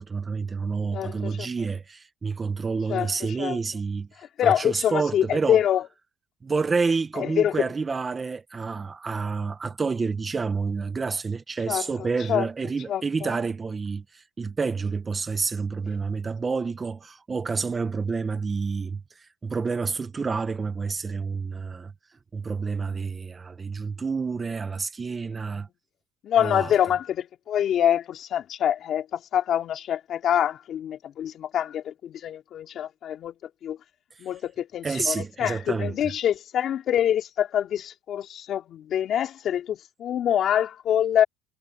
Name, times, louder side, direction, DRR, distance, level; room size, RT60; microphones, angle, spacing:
voice 1, 0.0-5.6 6.4-21.9 22.3-25.7 26.4-26.7 34.8-36.1, right 4 dB, 20° right, 1.2 m, -29 dB
voice 2, 0.9-1.5 2.9-3.1 3.4-3.6 4.4-5.9 7.2-7.6 11.7-11.9 12.3-12.4 12.9-13.3 26.2-33.3 33.6-33.8 34.2-41.2, left 10 dB, 50° left, 3.0 m, -25 dB
cardioid pair, 115°, 0 cm